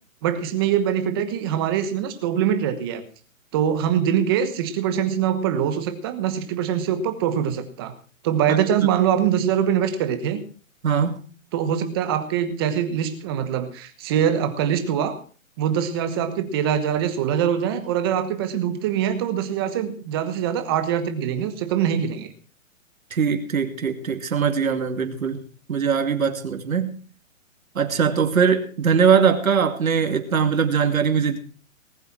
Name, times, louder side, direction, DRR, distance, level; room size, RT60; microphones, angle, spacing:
voice 1, 0.2-3.0 3.5-7.9 8.2-10.4 11.5-15.2 15.6-22.3, right 9 dB, 20° right, 9 dB, 1.2 m, -23 dB
voice 2, 10.8-11.2 23.1-25.4 25.7-27.0 27.8-31.4, right 6 dB, 90° right, 7 dB, 2.5 m, -21 dB
19.5 x 8.0 x 5.9 m, 0.40 s
hypercardioid pair, 170°, 40 cm